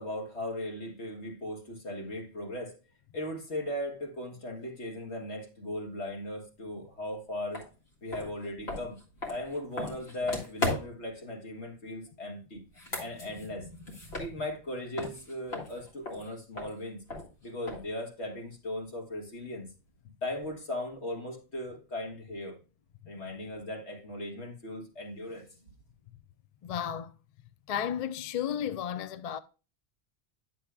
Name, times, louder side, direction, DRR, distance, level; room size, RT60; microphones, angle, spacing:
voice 1, 0.0-2.8 3.1-7.7 8.0-9.0 9.3-12.6 13.0-13.7 14.2-17.0 17.4-19.7 20.2-22.6 23.1-25.5, left 1 dB, 90° left, 2.1 m, -37 dB
sound 1, 7.5-7.7 8.1-11.1 12.6-14.7 15.0-18.0, left 2 dB, 70° left, 2.2 m, -37 dB
voice 2, 26.6-27.1 27.7-29.4, left 9 dB, 50° left, 0.4 m, -33 dB
9.9 x 7.4 x 2.3 m
omnidirectional pair, 1.1 m